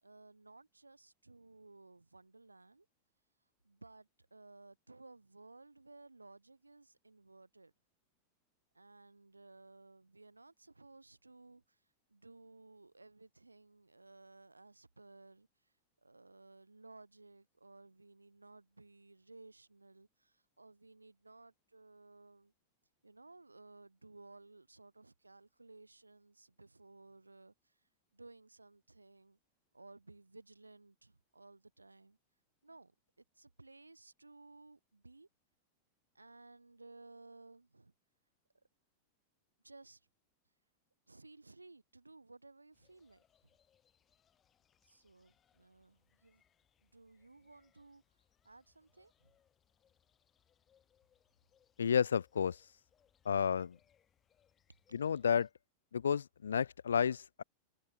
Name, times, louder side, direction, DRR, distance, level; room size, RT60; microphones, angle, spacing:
voice 1, 0.0-2.9 3.6-7.7 8.7-11.8 12.1-15.7 16.0-22.5 23.0-29.4 29.7-32.2 32.6-32.9 33.2-35.3 36.1-37.9 39.6-40.1 41.1-43.2 44.8-46.4 46.8-48.0 48.4-49.3, right 3 dB, 80° right, 3.6 m, -58 dB
sound 1, 42.7-55.5, left 9 dB, 25° left, 7.9 m, -75 dB
voice 2, 51.8-52.6 53.3-53.8 54.9-55.5 55.9-57.4, left 7 dB, 70° left, 0.3 m, -31 dB
figure-of-eight pair, 90°, 0 cm